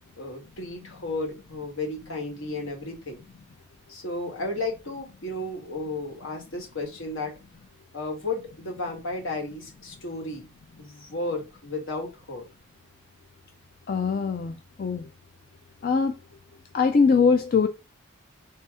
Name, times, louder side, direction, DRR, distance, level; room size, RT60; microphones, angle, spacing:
voice 1, 0.2-3.2 3.9-7.3 7.9-10.5 10.8-12.5, left 2 dB, 70° left, 1.5 m, -33 dB
voice 2, 13.9-14.5 14.8-15.1 15.8-16.1 16.7-17.7, left 5 dB, 40° left, 0.3 m, -21 dB
3.3 x 2.8 x 4.7 m
head